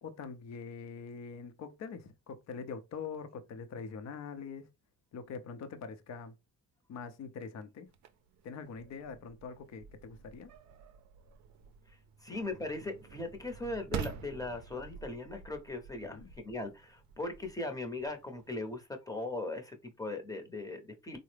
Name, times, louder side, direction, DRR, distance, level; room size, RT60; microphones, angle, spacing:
voice 1, 0.0-4.7 5.1-6.3 6.9-7.9 8.4-10.5 16.0-16.3, left 5 dB, 60° left, 0.7 m, -44 dB
sound 1, 7.9-18.8, right 7 dB, 65° right, 0.5 m, -48 dB
voice 2, 12.2-16.2 16.4-21.2, left 2 dB, 10° left, 0.7 m, -39 dB
3.6 x 2.0 x 3.2 m
cardioid pair, 90°, 30 cm